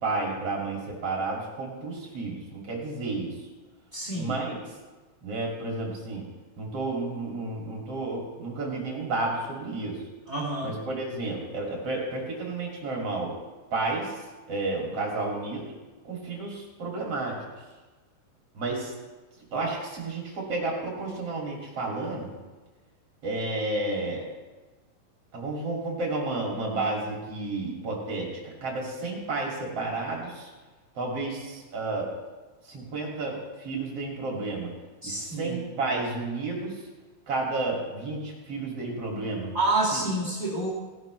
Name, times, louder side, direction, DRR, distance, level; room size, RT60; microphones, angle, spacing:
voice 1, 0.0-3.3 4.2-4.6 5.2-6.2 6.6-10.0 10.6-13.3 13.7-14.1 14.5-15.7 16.0-17.4 18.5-18.9 19.5-22.3 23.2-24.3 25.3-30.5 31.0-32.1 32.7-34.7 35.0-36.8 37.3-39.5 39.9-40.0, right 2 dB, 40° right, -2 dB, 2.6 m, -31 dB
voice 2, 3.9-4.4 10.3-10.7 35.0-35.9 39.5-40.7, right 2 dB, 80° right, -7 dB, 0.4 m, -28 dB
18.5 x 11.5 x 3.2 m, 1.2 s
omnidirectional pair, 5.6 m